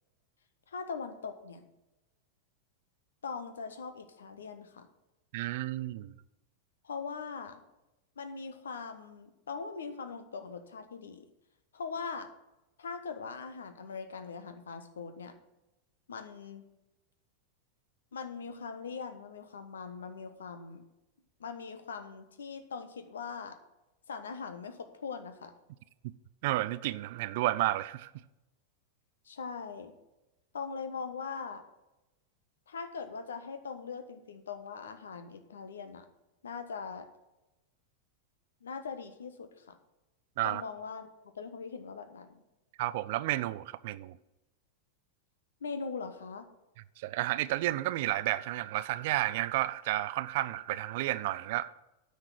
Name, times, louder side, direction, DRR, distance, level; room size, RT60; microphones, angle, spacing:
voice 1, 0.7-1.7 3.2-4.9 6.8-7.6 8.2-11.3 11.7-12.3 12.8-15.3 16.1-16.6 18.1-20.8 21.4-23.6 24.1-25.5 29.2-29.9 30.5-31.6 32.7-36.1 36.4-37.1 38.6-39.8 40.4-41.1 41.3-42.4 45.6-46.5, left 5 dB, 65° left, 1.2 m, -41 dB
voice 2, 5.3-6.1 26.4-28.1 40.4-40.6 42.8-44.2 47.0-51.7, right 16 dB, 50° right, 0.4 m, -31 dB
9.4 x 6.5 x 7.4 m
figure-of-eight pair, 90°, 0 cm